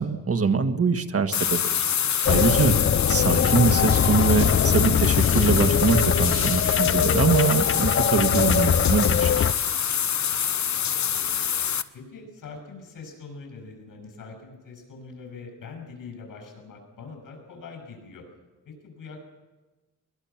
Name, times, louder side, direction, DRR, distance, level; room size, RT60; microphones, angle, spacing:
voice 1, 0.0-2.7 3.1-9.4, right 5 dB, 45° right, 8 dB, 1.8 m, -24 dB
sound 1, 1.3-11.8, left 8 dB, 55° left, 1.2 m, -26 dB
sound 2, 2.3-9.5, left 8 dB, 40° left, 0.7 m, -22 dB
voice 2, 10.1-11.5 11.9-18.3 18.6-19.2, left 4 dB, 80° left, 3 dB, 7.6 m, -43 dB
23.5 x 19.5 x 6.0 m, 1.2 s
cardioid pair, 75°, 33 cm